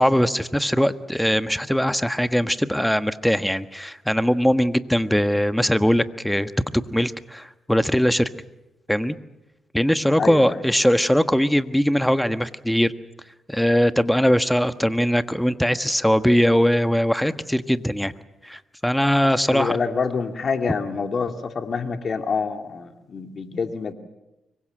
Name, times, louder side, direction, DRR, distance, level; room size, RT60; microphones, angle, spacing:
voice 1, 0.0-6.5 6.9-8.3 8.9-9.2 9.7-12.9 13.5-18.1 18.4-19.8, equal, 5° left, 11 dB, 1.4 m, -21 dB
voice 2, 10.2-10.6 19.5-23.9, left 5 dB, 55° left, 6 dB, 2.5 m, -26 dB
25.0 x 23.0 x 7.8 m, 0.97 s
hypercardioid pair, 45°, 0 cm